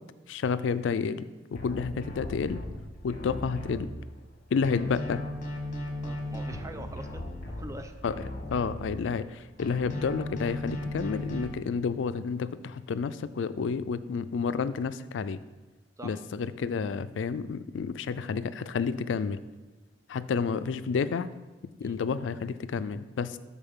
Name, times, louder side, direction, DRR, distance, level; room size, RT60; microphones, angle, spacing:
voice 1, 0.3-2.6 3.0-3.9 4.5-5.2 8.0-8.2 8.5-15.4 16.0-19.4 20.1-21.3 21.8-23.4, left 5 dB, 85° left, 14 dB, 0.4 m, -30 dB
sound 1, 1.6-4.3 4.6-9.3 9.6-11.4, left 1 dB, 45° left, 1.1 m, -37 dB
voice 2, 6.0-7.2 7.6-7.9 16.0-16.2 21.8-21.9, right 1 dB, 15° right, 7 dB, 0.5 m, -43 dB
12.5 x 4.2 x 3.7 m, 1.2 s
head